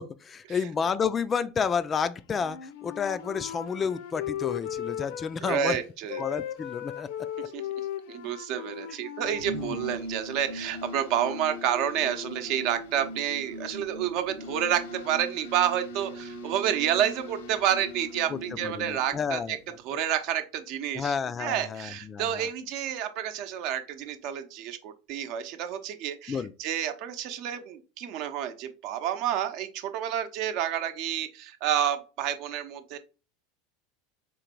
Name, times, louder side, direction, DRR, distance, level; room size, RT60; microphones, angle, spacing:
voice 1, 0.0-5.8 6.2-7.1 9.5-9.8 18.3-18.4 18.6-19.6 20.9-22.5 26.3-26.5, left 6 dB, 25° left, 0.3 m, -30 dB
Wind instrument woodwind instrument, 2.4-5.8 6.1-10.0, left 10 dB, 75° left, 0.6 m, -37 dB
voice 2, 5.4-6.2 7.5-7.6 8.1-19.6 19.8-33.0, right 10 dB, 60° right, 0.7 m, -29 dB
sound 1, 9.2-19.7, left 1 dB, 90° left, 1.0 m, -40 dB
3.8 x 3.0 x 4.5 m
supercardioid pair, 115°, 0 cm